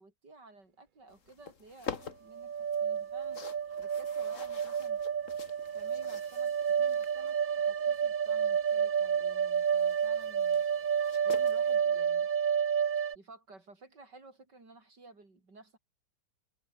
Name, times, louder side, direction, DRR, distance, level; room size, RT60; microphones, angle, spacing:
voice 1, 0.0-5.0 5.7-10.7 11.2-12.3 13.1-15.8, right 3 dB, 75° right, 5.8 m, -55 dB
sound 1, 1.1-11.8, left 6 dB, 50° left, 1.8 m, -49 dB
sound 2, 2.3-13.1, right 7 dB, 55° right, 0.5 m, -30 dB
omnidirectional pair, 1.9 m